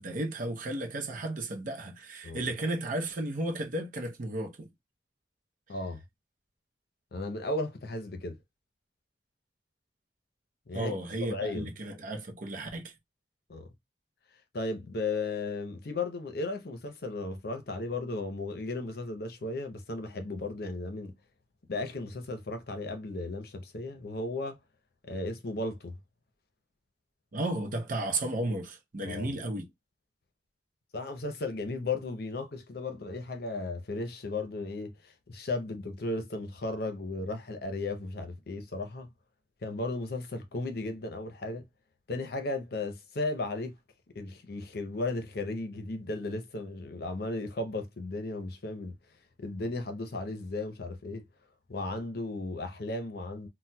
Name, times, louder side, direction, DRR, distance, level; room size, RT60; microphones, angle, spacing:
voice 1, 0.0-4.7 10.7-12.9 27.3-29.7, right 1 dB, 50° right, 0.6 m, -34 dB
voice 2, 5.7-6.0 7.1-8.4 10.7-11.0 11.3-11.7 13.5-13.7 14.5-21.2 21.7-24.6 25.0-25.9 29.0-29.3 30.9-39.1 39.6-41.6 42.1-43.8 44.1-49.0 49.4-51.2 51.7-53.5, left 2 dB, 60° left, 0.6 m, -35 dB
4.1 x 2.1 x 2.2 m
head